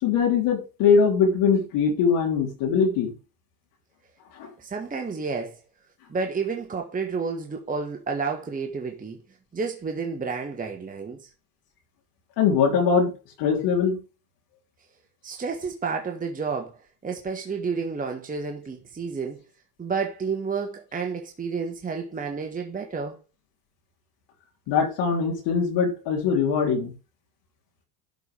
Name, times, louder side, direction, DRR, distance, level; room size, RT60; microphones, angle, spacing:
voice 1, 0.0-3.1 4.4-4.5 12.4-13.1 13.4-14.0 24.7-26.9, left 6 dB, 60° left, 3.3 m, -22 dB
voice 2, 4.6-5.6 6.1-9.2 9.5-11.3 15.2-16.8 17.0-19.4 19.8-23.2, right 5 dB, 15° right, 1.3 m, -30 dB
12.0 x 4.6 x 4.9 m
supercardioid pair, 105°, 46 cm